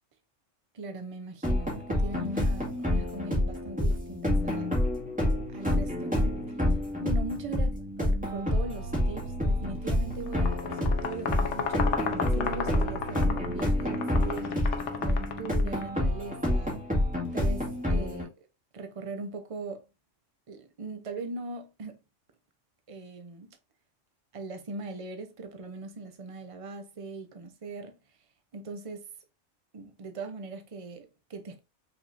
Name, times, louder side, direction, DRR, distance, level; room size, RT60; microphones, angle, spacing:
voice 1, 0.7-4.8 5.5-6.7 7.0-7.7 8.0-14.5 15.0-16.8 17.3-18.5 18.7-19.8 20.5-22.0 22.9-23.6 24.3-28.0 28.5-29.1 29.7-31.6, right 3 dB, 35° right, 0.7 m, -40 dB
sound 1, 1.4-18.2, left 1 dB, 5° right, 1.8 m, -28 dB
sound 2, 7.8-13.6, right 3 dB, 65° right, 1.8 m, -42 dB
sound 3, 10.3-16.0, left 7 dB, 70° left, 1.0 m, -34 dB
5.8 x 3.6 x 2.6 m
omnidirectional pair, 1.3 m